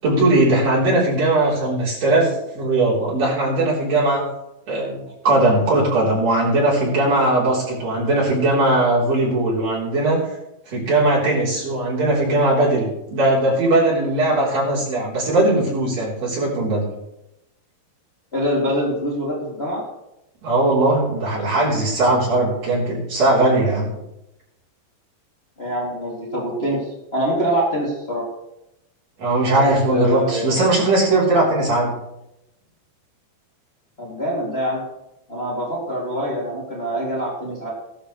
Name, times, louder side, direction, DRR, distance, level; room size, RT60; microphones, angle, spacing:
voice 1, 0.0-4.2 4.7-10.2 10.7-16.9 20.4-23.9 29.2-31.9, right 2 dB, 40° right, -6 dB, 4.7 m, -19 dB
voice 2, 18.3-19.8 25.6-28.2 29.5-30.6 34.0-34.8 35.3-37.7, equal, 20° left, -6 dB, 2.1 m, -24 dB
17.0 x 12.5 x 3.2 m, 0.88 s
omnidirectional pair, 4.9 m